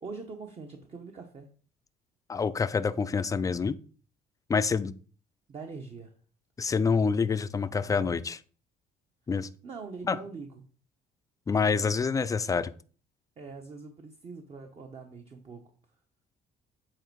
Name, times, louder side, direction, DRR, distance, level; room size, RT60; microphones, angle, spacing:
voice 1, 0.0-1.5 5.5-6.1 9.6-10.6 13.4-15.6, right 4 dB, 35° right, 4 dB, 1.0 m, -43 dB
voice 2, 2.3-3.8 4.5-4.9 6.6-8.4 9.3-9.5 10.1-10.2 11.5-12.7, left 5 dB, 20° left, 14 dB, 0.4 m, -27 dB
7.8 x 4.3 x 4.6 m, 0.41 s
cardioid pair, 110°, 17 cm